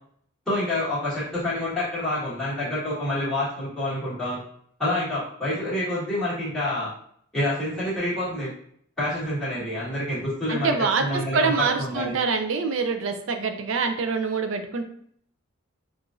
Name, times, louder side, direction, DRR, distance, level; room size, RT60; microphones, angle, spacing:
voice 1, 0.5-4.4 4.8-6.9 7.3-8.5 9.0-10.7 11.0-12.1, left 1 dB, ahead, -12 dB, 1.5 m, -27 dB
voice 2, 10.5-11.0 11.3-14.8, right 4 dB, 65° right, 6 dB, 0.5 m, -25 dB
4.7 x 2.5 x 2.5 m, 0.65 s
head